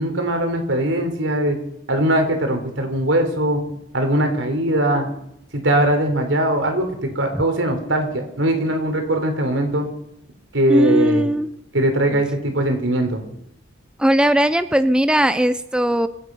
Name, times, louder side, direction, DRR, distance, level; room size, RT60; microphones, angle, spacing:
voice 1, 0.0-1.6 1.9-3.6 3.9-5.1 5.5-9.9 10.5-11.2 11.7-13.2, right 1 dB, 80° right, 5 dB, 3.7 m, -20 dB
voice 2, 10.7-11.5 14.0-16.1, equal, 5° right, 12 dB, 0.5 m, -18 dB
25.0 x 9.4 x 5.5 m, 0.77 s
head